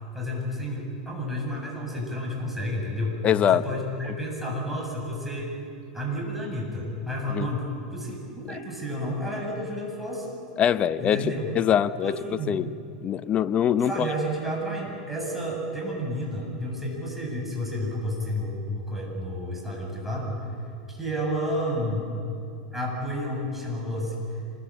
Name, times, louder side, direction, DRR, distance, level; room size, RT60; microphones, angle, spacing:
voice 1, 0.1-3.2 3.5-5.6 5.9-7.6 7.9-10.3 11.0-11.5 12.0-12.6 13.8-20.4 20.9-22.1 22.7-24.2, equal, 5° right, -2 dB, 7.9 m, -31 dB
voice 2, 3.2-3.7 7.3-7.5 8.5-8.6 10.6-12.1 12.5-12.7 13.0-14.1, left 9 dB, 30° left, 14 dB, 0.8 m, -23 dB
26.5 x 21.5 x 9.0 m, 2.6 s
supercardioid pair, 125°, 4 cm